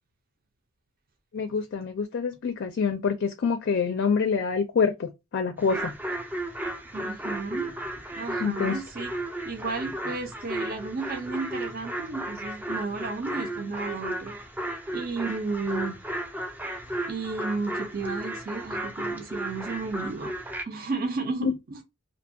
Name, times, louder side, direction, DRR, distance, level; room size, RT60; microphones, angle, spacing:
voice 1, 1.3-5.9 8.4-8.8 21.4-21.5, left 5 dB, 55° left, 0.4 m, -26 dB
sound 1, 5.6-20.6, right 1 dB, 10° right, 0.4 m, -34 dB
voice 2, 6.9-7.7 8.1-9.1 9.4-14.4 14.9-15.9 17.1-20.3 20.6-21.8, right 4 dB, 45° right, 0.6 m, -33 dB
2.6 x 2.2 x 2.6 m
head